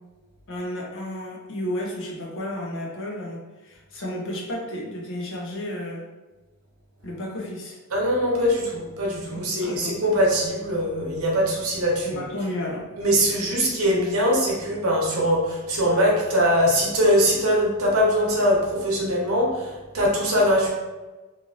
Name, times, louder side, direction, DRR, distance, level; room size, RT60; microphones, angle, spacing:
voice 1, 0.5-6.0 7.0-7.8 9.3-10.0 12.0-12.9 13.5-14.2, left 1 dB, 60° left, -1 dB, 0.7 m, -32 dB
voice 2, 7.9-12.2 13.0-20.7, equal, 80° right, -2 dB, 0.8 m, -22 dB
3.0 x 2.6 x 2.5 m, 1.2 s
head